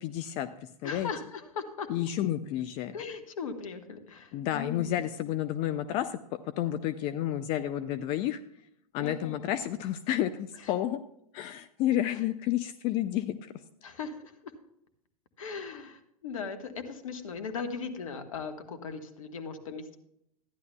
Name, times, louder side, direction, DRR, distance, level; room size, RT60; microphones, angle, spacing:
voice 1, 0.0-1.1 1.9-3.0 4.3-6.2 6.6-8.4 8.9-11.0 11.3-13.5, left 12 dB, 30° left, 10 dB, 0.4 m, -31 dB
voice 2, 0.8-1.9 2.9-5.0 9.0-9.5 13.8-14.5 15.4-20.0, left 5 dB, 60° left, 8 dB, 1.3 m, -38 dB
14.5 x 10.5 x 2.2 m, 0.77 s
figure-of-eight pair, 95°, 19 cm